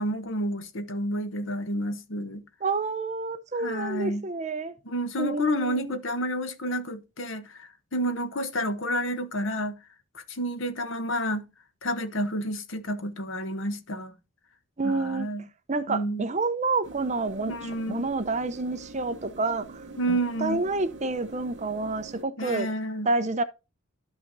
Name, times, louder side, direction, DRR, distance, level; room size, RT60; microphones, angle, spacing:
voice 1, 0.0-2.4 3.6-4.2 4.8-9.8 10.1-11.4 11.8-14.1 14.8-15.4 15.9-16.3 17.5-18.1 20.0-20.6 22.4-23.1, equal, 60° left, 0.9 m, -30 dB
voice 2, 2.6-4.7 5.2-5.9 14.8-15.3 15.7-17.6 17.9-22.7 23.0-23.4, right 3 dB, 35° right, 0.6 m, -29 dB
sound 1, 16.8-22.2, right 2 dB, 55° right, 0.9 m, -45 dB
12.5 x 5.7 x 2.6 m
head